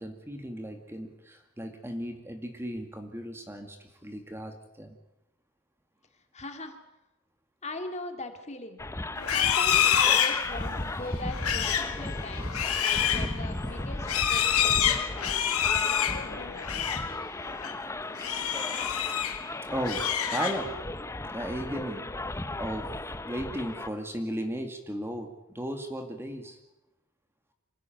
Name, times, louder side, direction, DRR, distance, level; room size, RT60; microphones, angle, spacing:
voice 1, 0.0-3.8 4.0-5.0 15.8-15.9 19.7-20.7 21.3-22.0 22.6-22.8 23.2-25.3 25.5-26.6, equal, 10° right, 5 dB, 2.1 m, -35 dB
voice 2, 6.3-6.8 7.6-8.8 9.3-16.6, left 2 dB, 30° left, 6 dB, 2.3 m, -40 dB
sound 1, 8.8-23.9, left 2 dB, 10° left, 0.8 m, -36 dB
Livestock farm animals working animals, 9.2-17.1 17.4-17.7 18.1-19.4 19.7-20.8, left 9 dB, 75° left, 2.1 m, -27 dB
26.0 x 15.5 x 9.2 m, 0.91 s
head